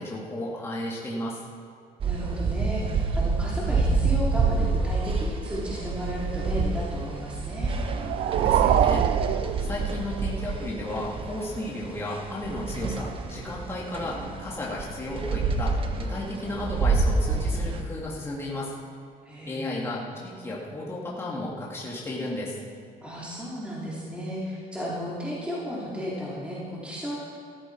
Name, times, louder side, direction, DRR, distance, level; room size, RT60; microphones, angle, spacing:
voice 1, 0.0-1.4 8.3-18.7 19.5-22.6, left 1 dB, 15° left, -5 dB, 2.4 m, -34 dB
voice 2, 2.0-7.8 19.2-19.8 23.0-27.2, equal, 5° right, -6 dB, 2.8 m, -34 dB
sound 1, 2.0-17.8, right 4 dB, 35° right, 1.0 m, -28 dB
sound 2, 7.7-10.3, right 10 dB, 65° right, 0.5 m, -25 dB
15.5 x 13.5 x 4.7 m, 2.2 s
cardioid pair, 155°, 15 cm